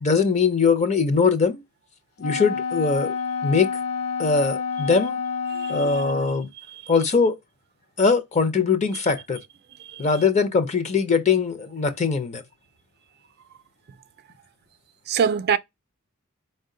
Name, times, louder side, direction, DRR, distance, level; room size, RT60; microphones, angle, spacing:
voice 1, 0.0-1.6 2.2-3.2 3.4-3.7 4.2-5.2 5.7-6.5 6.9-7.4 8.0-9.4 10.0-12.4, left 5 dB, 30° left, 0.5 m, -21 dB
Wind instrument woodwind instrument, 2.2-6.5, left 5 dB, 80° left, 0.5 m, -28 dB
voice 2, 5.5-6.0 6.5-6.9 9.8-10.1 15.1-15.6, right 7 dB, 45° right, 0.4 m, -26 dB
4.4 x 2.1 x 3.7 m
head